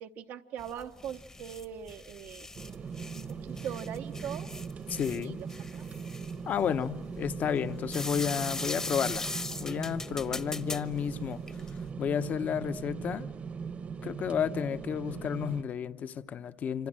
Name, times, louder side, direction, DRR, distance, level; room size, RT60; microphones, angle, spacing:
voice 1, 0.0-2.5 3.1-4.5 5.1-5.3 5.7-5.8, right 9 dB, 80° right, 5 dB, 0.9 m, -41 dB
sound 1, 0.6-11.9, left 2 dB, 15° left, 0.9 m, -40 dB
sound 2, 2.5-15.6, right 6 dB, 40° right, 0.9 m, -40 dB
voice 2, 4.9-5.4 6.5-9.3 9.6-11.4 12.0-13.3 14.0-16.9, left 8 dB, 50° left, 12 dB, 1.0 m, -31 dB
27.0 x 26.0 x 7.6 m, 1.4 s
cardioid pair, 125°, 4 cm